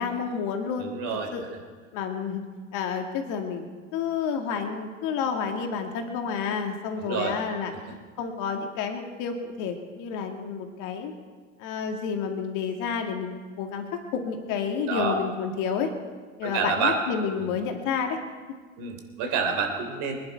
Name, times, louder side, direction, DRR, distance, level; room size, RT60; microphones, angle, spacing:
voice 1, 0.0-0.9 1.3-1.5 1.9-2.4 2.7-7.7 8.2-11.1 11.6-13.9 14.1-15.9 16.4-18.2, left 6 dB, 50° left, 4 dB, 2.4 m, -30 dB
voice 2, 0.8-1.3 7.0-7.3 14.9-15.2 16.4-17.0 18.8-20.2, right 5 dB, 50° right, 4 dB, 3.4 m, -28 dB
25.5 x 10.5 x 4.7 m, 1.5 s
hypercardioid pair, 80°, 38 cm